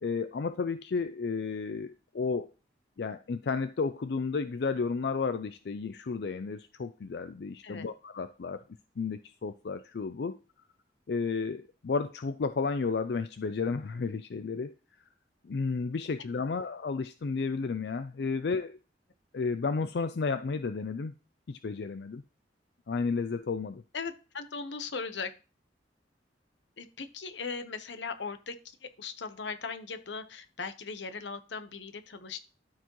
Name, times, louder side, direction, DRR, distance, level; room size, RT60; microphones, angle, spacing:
voice 1, 0.0-2.5 3.0-8.6 9.0-10.4 11.1-14.8 15.4-18.8 19.3-21.1 21.5-22.2 22.9-23.8, left 4 dB, 65° left, 10 dB, 0.4 m, -32 dB
voice 2, 23.9-25.3 26.8-32.4, left 5 dB, 85° left, 10 dB, 0.9 m, -39 dB
12.5 x 4.9 x 3.0 m, 0.34 s
head